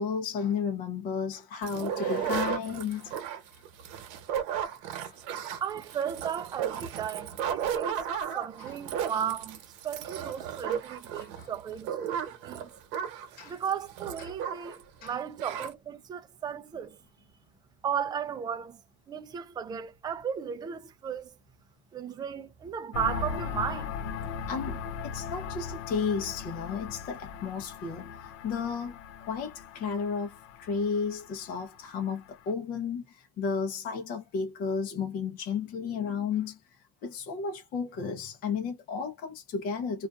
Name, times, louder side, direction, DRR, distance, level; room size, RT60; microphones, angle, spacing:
voice 1, 0.0-3.6 5.0-5.2 8.6-8.8 11.2-11.5 12.1-12.2 13.4-13.6 14.2-14.3 15.0-15.2 24.5-40.1, left 6 dB, 50° left, 0.7 m, -33 dB
sound 1, 1.6-14.8 15.1-15.2 15.4-15.7, right 9 dB, 85° right, 0.9 m, -34 dB
voice 2, 5.6-8.1 8.3-9.6 9.8-12.7 13.4-17.0 17.8-18.8 19.1-21.3 21.9-23.9, right 8 dB, 20° right, 0.4 m, -35 dB
sound 2, 22.9-32.5, left 6 dB, 90° left, 0.7 m, -39 dB
2.5 x 2.3 x 2.3 m
cardioid pair, 140°, 19 cm